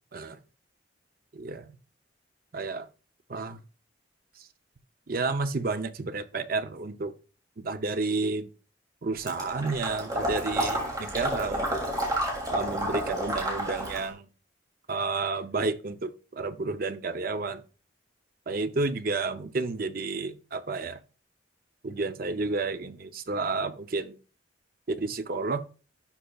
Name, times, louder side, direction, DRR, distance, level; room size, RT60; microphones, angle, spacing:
voice 1, 1.3-1.7 2.5-2.9 3.3-3.6 5.1-7.1 7.6-8.5 9.0-11.8 12.5-14.2 14.9-17.6 18.5-21.0 21.8-24.2 24.9-25.6, right 3 dB, 50° right, 0.6 m, -31 dB
Water / Liquid, 9.3-14.1, equal, 20° right, 2.7 m, -30 dB
11.5 x 5.7 x 2.3 m
head